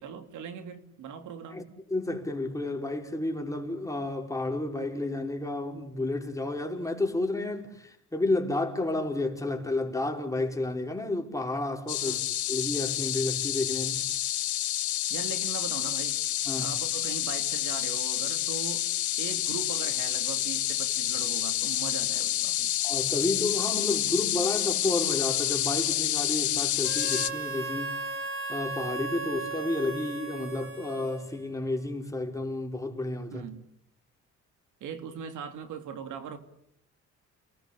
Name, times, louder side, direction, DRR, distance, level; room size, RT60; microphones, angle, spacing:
voice 1, 0.0-1.7 12.0-12.3 15.1-16.2 16.6-18.9 19.2-22.7 33.3-33.6 34.8-36.4, right 7 dB, 80° right, 3.1 m, -40 dB
voice 2, 1.9-12.2 12.5-14.1 16.5-16.7 22.8-28.0 28.5-33.5, left 2 dB, 10° left, 5.1 m, -31 dB
sound 1, 11.9-27.3, left 13 dB, 75° left, 1.1 m, -29 dB
Harmonica, 26.8-31.7, right 3 dB, 45° right, 6.6 m, -36 dB
30.0 x 19.5 x 8.5 m
cardioid pair, 90°, 30 cm